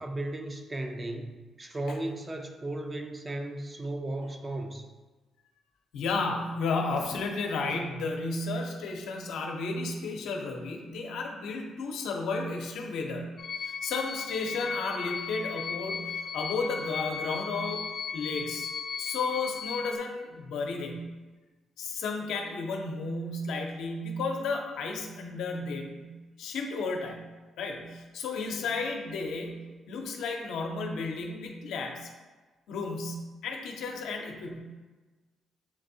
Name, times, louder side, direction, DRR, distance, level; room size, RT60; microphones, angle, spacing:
voice 1, 0.0-4.9, right 1 dB, 25° right, 4 dB, 0.5 m, -35 dB
voice 2, 5.9-13.3 13.6-17.9 18.1-18.7 19.0-21.1 21.8-26.1 26.4-27.3 27.6-32.1 32.7-34.6, left 3 dB, 80° left, 1 dB, 0.7 m, -33 dB
sound 1, 13.4-20.0, left 5 dB, 60° left, 0.3 m, -36 dB
7.2 x 2.6 x 2.7 m, 1.3 s
cardioid pair, 90°, 0 cm